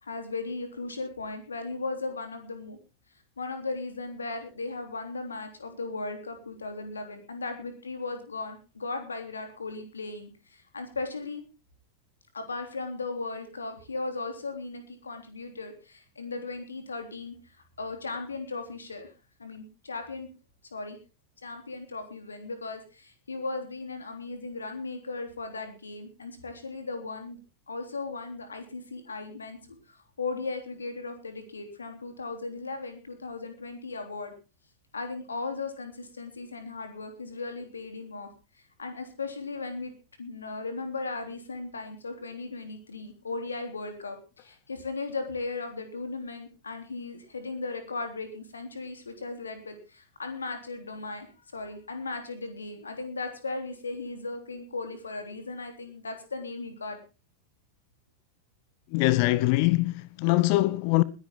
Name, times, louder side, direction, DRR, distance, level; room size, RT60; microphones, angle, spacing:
voice 1, 0.0-2.8 3.4-11.4 12.3-17.4 17.8-19.1 19.4-20.3 20.7-21.0 21.4-27.4 27.7-29.6 29.9-34.3 34.9-38.3 38.8-39.9 40.2-51.3 51.5-57.0, left 3 dB, 75° left, 3.5 m, -37 dB
voice 2, 58.9-61.0, left 19 dB, 45° left, 0.8 m, -23 dB
20.5 x 11.0 x 3.8 m
figure-of-eight pair, 90°, 0 cm